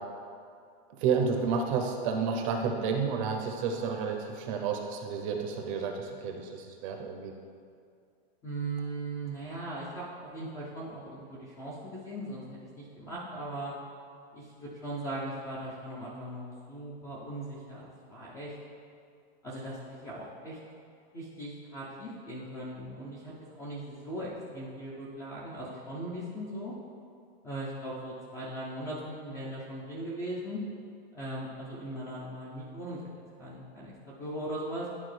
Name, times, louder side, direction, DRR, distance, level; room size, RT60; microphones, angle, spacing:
voice 1, 1.0-7.3, right 5 dB, 35° right, 3 dB, 0.6 m, -30 dB
voice 2, 8.4-13.7 14.3-18.5 19.4-20.6 21.1-23.3 23.6-26.7 27.4-30.6 31.1-33.0 33.4-34.9, right 1 dB, 10° left, -5 dB, 0.4 m, -39 dB
10.5 x 3.6 x 3.2 m, 2.3 s
supercardioid pair, 155°, 31 cm